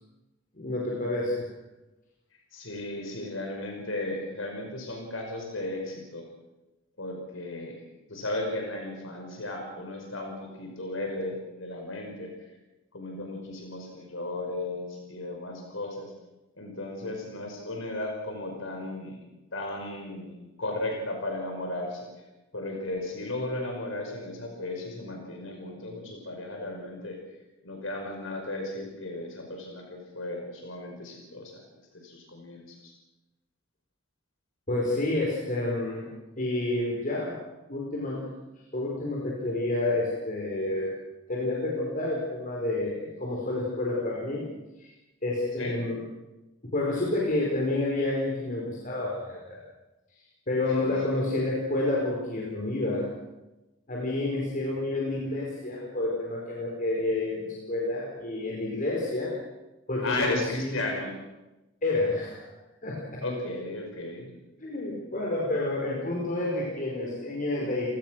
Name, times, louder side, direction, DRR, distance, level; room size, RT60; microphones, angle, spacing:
voice 1, 0.5-1.5 34.7-36.1 36.4-37.4 37.7-38.3 38.7-41.0 41.3-44.5 44.8-44.9 45.2-46.0 46.6-49.6 50.5-53.1 53.9-59.3 59.9-60.8 61.8-62.4 62.8-63.2 64.6-67.9, left 2 dB, 45° left, -3 dB, 5.0 m, -29 dB
voice 2, 2.5-6.2 7.0-7.8 8.1-12.3 12.9-16.1 16.6-19.2 19.5-22.1 22.5-27.2 27.6-31.6 31.9-32.9 45.6-45.7 50.8-50.9 60.0-61.1 63.2-64.4, left 2 dB, 85° left, 2 dB, 5.5 m, -35 dB
29.5 x 19.0 x 6.4 m, 1.0 s
head